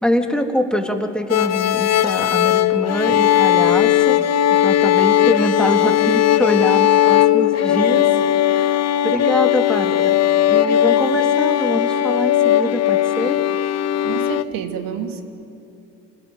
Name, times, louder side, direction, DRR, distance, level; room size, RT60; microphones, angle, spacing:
voice 1, 0.0-4.2 4.5-8.1 8.4-10.2 10.5-13.4, left 1 dB, ahead, 3 dB, 3.2 m, -24 dB
sound 1, 1.3-14.4, left 11 dB, 45° left, 0.9 m, -17 dB
voice 2, 14.0-15.2, right 7 dB, 65° right, 5 dB, 2.7 m, -29 dB
27.0 x 20.0 x 9.3 m, 2.7 s
hypercardioid pair, 65°, 37 cm